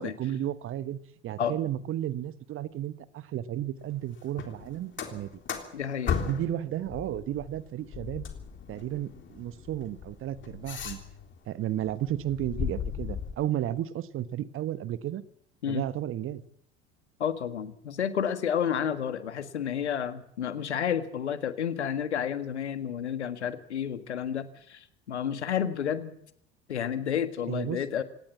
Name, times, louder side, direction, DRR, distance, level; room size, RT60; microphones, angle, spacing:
voice 1, 0.0-5.4 6.2-8.3 8.7-11.0 11.5-15.2 15.7-16.4 27.5-27.8, right 12 dB, 40° right, 16 dB, 1.2 m, -33 dB
sound 1, 4.3-6.6 6.9-11.4 11.8-13.3, left 7 dB, 35° left, 3.5 m, -36 dB
voice 2, 5.7-6.2 15.6-15.9 17.2-26.1 26.7-28.0, left 8 dB, 75° left, 12 dB, 1.7 m, -31 dB
26.5 x 18.0 x 7.4 m, 0.69 s
figure-of-eight pair, 70°, 34 cm